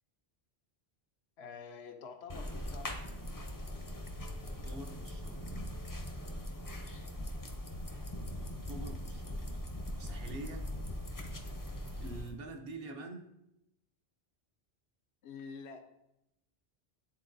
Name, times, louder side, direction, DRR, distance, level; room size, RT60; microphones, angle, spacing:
voice 1, 1.4-2.9 15.2-15.8, left 5 dB, 80° left, 6 dB, 0.9 m, -47 dB
sound 1, 2.3-12.3, left 1 dB, 25° left, 0.5 m, -41 dB
voice 2, 4.4-5.6 8.4-9.6 10.0-10.7 11.7-13.3, right 2 dB, 65° right, 3 dB, 1.0 m, -47 dB
10.5 x 3.8 x 2.6 m, 0.86 s
omnidirectional pair, 1.1 m